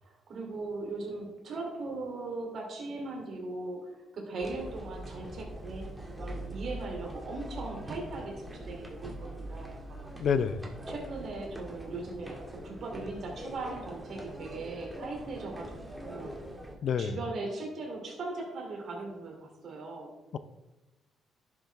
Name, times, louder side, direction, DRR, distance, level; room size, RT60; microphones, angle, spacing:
voice 1, 0.0-3.8 4.1-9.7 10.9-16.3 17.0-20.1, right 3 dB, 60° right, 3.0 m, -39 dB
sound 1, 4.4-16.8, right 1 dB, 10° right, 2.2 m, -43 dB
voice 2, 10.2-10.7 16.8-17.2 20.3-20.4, left 7 dB, 60° left, 0.5 m, -28 dB
11.0 x 7.2 x 3.5 m
cardioid pair, 90°, 0 cm